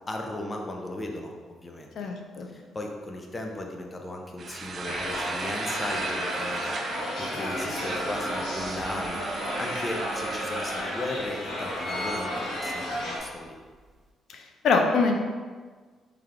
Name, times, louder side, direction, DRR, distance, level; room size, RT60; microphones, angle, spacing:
voice 1, 0.1-1.4 1.6-2.1 2.5-13.6, left 1 dB, 20° left, 2 dB, 0.6 m, -36 dB
voice 2, 2.0-2.5 14.3-15.2, left 4 dB, 65° left, 4 dB, 0.5 m, -24 dB
sound 1, 4.4-10.8, right 4 dB, 45° right, 0.3 m, -36 dB
sound 2, 4.8-13.2, left 1 dB, 90° left, 1.2 m, -33 dB
sound 3, 8.1-9.3 9.9-10.0 10.3-10.4 11.0-11.2 11.5-13.3 13.7-13.8, left 1 dB, 20° right, 0.7 m, -39 dB
3.4 x 3.3 x 3.7 m, 1.5 s
cardioid pair, 115°, 0 cm